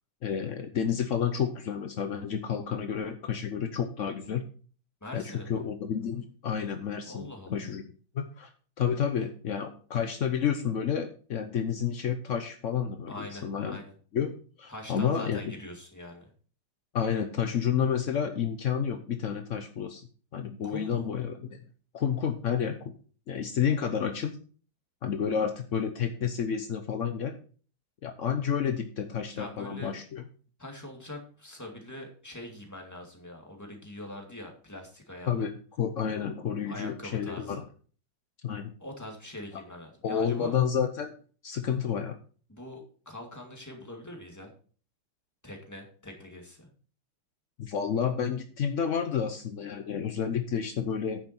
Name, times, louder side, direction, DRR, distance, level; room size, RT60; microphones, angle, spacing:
voice 1, 0.2-4.4 5.1-7.8 8.1-8.5 8.8-13.8 14.1-14.3 14.6-15.4 16.9-20.1 20.3-21.6 21.9-22.9 23.3-24.4 25.0-27.3 28.0-30.2 35.3-35.5 35.8-37.6 38.4-38.7 40.0-41.1 41.4-42.2 47.6-51.2, left 7 dB, 75° left, 7 dB, 0.7 m, -30 dB
voice 2, 5.0-5.6 7.1-7.6 13.1-13.9 14.7-16.3 20.6-21.0 29.4-30.0 30.6-35.4 36.7-37.6 38.8-40.6 42.5-44.5 45.4-46.7, left 1 dB, 10° left, 1 dB, 2.0 m, -43 dB
9.4 x 7.2 x 4.4 m, 0.42 s
omnidirectional pair, 2.4 m